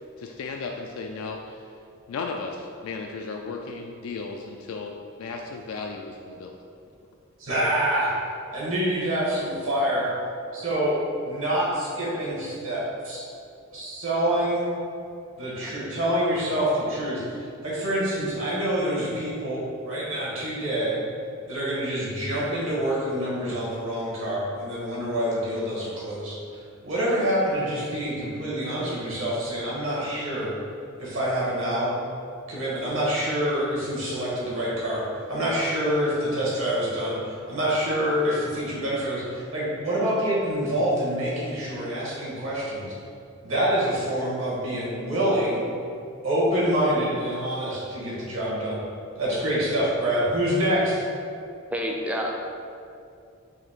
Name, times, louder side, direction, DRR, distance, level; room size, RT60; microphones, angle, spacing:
voice 1, 0.2-1.6 2.1-6.5, left 4 dB, 75° left, 2 dB, 0.3 m, -35 dB
voice 2, 7.4-8.1 8.5-10.1 10.5-11.0 11.2-13.3 13.7-14.7 15.4-17.2 17.6-21.0 21.5-26.3 26.8-30.5 31.0-31.9 32.5-35.0 35.3-42.9 43.4-45.6 46.2-48.8 49.2-51.0, equal, 70° right, -6 dB, 1.4 m, -26 dB
voice 3, 51.7-52.3, equal, 5° right, 0 dB, 0.4 m, -28 dB
4.2 x 2.8 x 4.3 m, 2.4 s
head